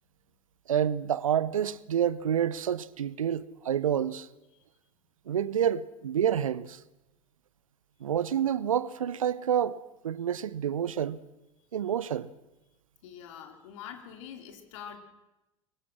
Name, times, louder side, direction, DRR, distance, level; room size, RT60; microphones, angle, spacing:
voice 1, 0.7-4.3 5.3-6.8 8.0-11.2 11.7-12.3, right 9 dB, 80° right, 0.8 m, -28 dB
voice 2, 11.6-11.9 13.0-15.0, left 8 dB, 65° left, 3.8 m, -45 dB
25.0 x 24.0 x 6.4 m
figure-of-eight pair, 75°, 17 cm